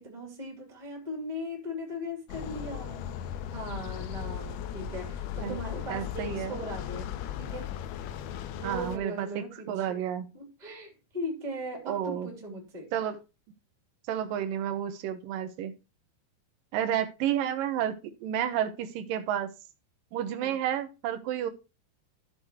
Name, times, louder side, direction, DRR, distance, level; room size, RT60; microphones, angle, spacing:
voice 1, 0.0-7.1 7.4-7.7 8.6-10.0 10.3-12.9 20.4-20.6, equal, 15° right, 2.4 m, -39 dB
sound 1, 2.3-9.0, left 9 dB, 85° left, 2.7 m, -37 dB
voice 2, 5.9-6.6 8.6-10.3 11.9-12.3 12.9-13.2 14.1-15.7 16.7-19.5 20.1-21.5, right 10 dB, 70° right, 2.6 m, -31 dB
13.5 x 6.2 x 3.0 m
omnidirectional pair, 4.5 m